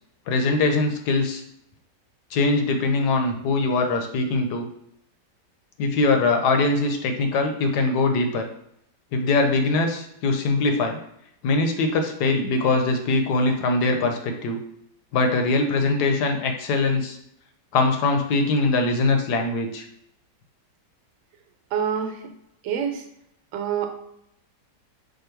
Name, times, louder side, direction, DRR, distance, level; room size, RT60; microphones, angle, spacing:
voice 1, 0.3-1.4 2.3-4.7 5.8-8.5 9.1-11.0 11.4-14.6 15.1-17.2 17.7-19.8, left 3 dB, 70° left, 4 dB, 1.2 m, -22 dB
voice 2, 21.7-22.2 22.6-23.0 23.5-23.9, right 8 dB, 85° right, 5 dB, 1.4 m, -26 dB
5.2 x 2.2 x 4.4 m, 0.75 s
omnidirectional pair, 1.9 m